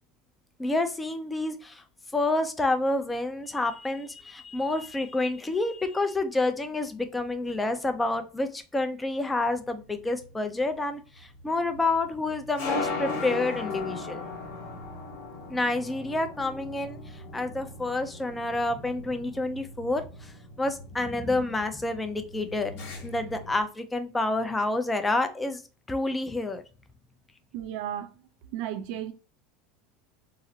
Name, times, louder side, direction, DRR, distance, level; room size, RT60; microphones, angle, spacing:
voice 1, 0.6-1.8 2.1-14.3 15.5-20.3 20.6-22.7 23.0-25.6 25.9-26.6, left 2 dB, 15° left, 0.5 m, -29 dB
sound 1, 9.7-23.6, left 3 dB, 75° left, 1.2 m, -38 dB
voice 2, 27.5-28.1 28.5-29.1, right 11 dB, 65° right, 0.5 m, -33 dB
3.8 x 2.0 x 2.7 m
supercardioid pair, 100°, 0 cm